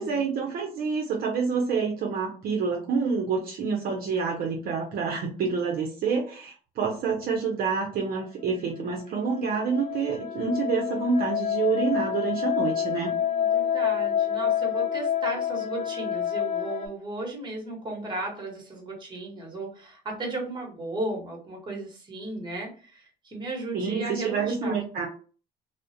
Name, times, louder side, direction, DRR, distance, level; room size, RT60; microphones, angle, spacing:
voice 1, 0.0-13.1 23.7-25.1, right 5 dB, 60° right, 0 dB, 0.6 m, -27 dB
sound 1, 8.5-16.9, left 9 dB, 40° left, 0.4 m, -28 dB
voice 2, 12.7-24.8, right 2 dB, 25° right, 0 dB, 1.1 m, -35 dB
2.3 x 2.1 x 2.6 m, 0.39 s
cardioid pair, 110°, 17 cm